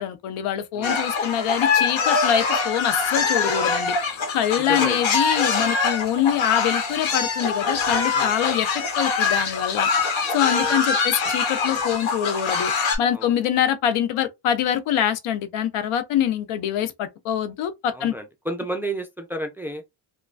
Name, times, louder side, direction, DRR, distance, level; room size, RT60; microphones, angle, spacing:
voice 1, 0.0-3.9 4.3-9.9 10.3-12.7 13.0-18.1, left 10 dB, 80° left, 0.7 m, -24 dB
sound 1, 0.8-13.0, left 5 dB, 65° left, 1.1 m, -23 dB
voice 2, 4.7-5.0 8.1-8.3 13.1-13.3 17.9-19.8, right 1 dB, 5° right, 0.4 m, -31 dB
3.0 x 2.2 x 2.4 m
cardioid pair, 95°, 50 cm